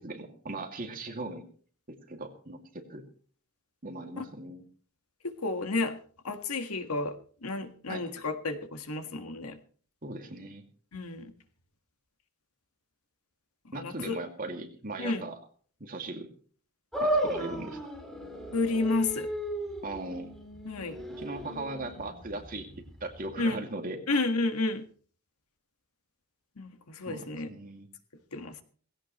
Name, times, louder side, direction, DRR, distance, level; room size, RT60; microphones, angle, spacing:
voice 1, 0.0-1.5 1.9-3.0 3.8-4.6 7.9-8.0 10.0-10.6 13.7-15.4 15.8-16.3 17.0-17.8 19.8-20.3 21.1-24.2 27.1-27.9, right 2 dB, 40° right, 4 dB, 2.5 m, -39 dB
voice 2, 5.2-5.9 6.2-9.6 10.9-11.3 13.6-14.2 15.0-15.2 18.5-19.3 20.6-21.0 23.4-23.6 24.1-24.8 26.6-27.5 28.3-28.6, left 3 dB, 90° left, 8 dB, 1.7 m, -31 dB
sound 1, 16.9-23.4, right 1 dB, ahead, 2.8 m, -35 dB
18.5 x 16.5 x 3.1 m, 0.44 s
head